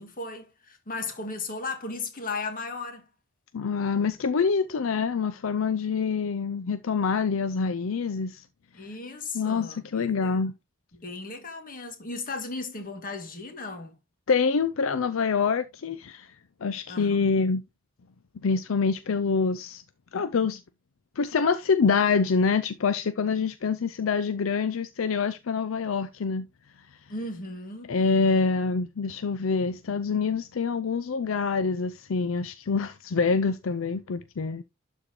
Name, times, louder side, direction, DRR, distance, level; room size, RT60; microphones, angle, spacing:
voice 1, 0.0-3.0 8.7-10.4 11.0-13.9 16.9-17.2 27.1-28.4, left 3 dB, 45° left, 1.9 m, -36 dB
voice 2, 3.5-8.4 9.3-10.5 14.3-16.3 16.6-17.6 18.4-19.8 20.1-20.6 21.2-26.5 27.9-34.6, left 5 dB, 75° left, 0.5 m, -26 dB
12.0 x 4.2 x 2.8 m
head